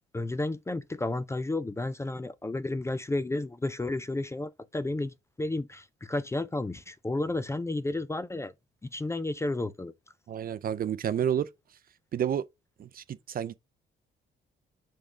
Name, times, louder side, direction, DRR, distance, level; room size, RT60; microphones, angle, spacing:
voice 1, 0.1-8.5 8.8-9.9, left 2 dB, 15° left, 0.4 m, -32 dB
voice 2, 10.3-11.5 12.1-12.4 12.8-13.6, right 9 dB, 45° right, 0.5 m, -30 dB
5.0 x 3.7 x 5.0 m
cardioid pair, 90°, 20 cm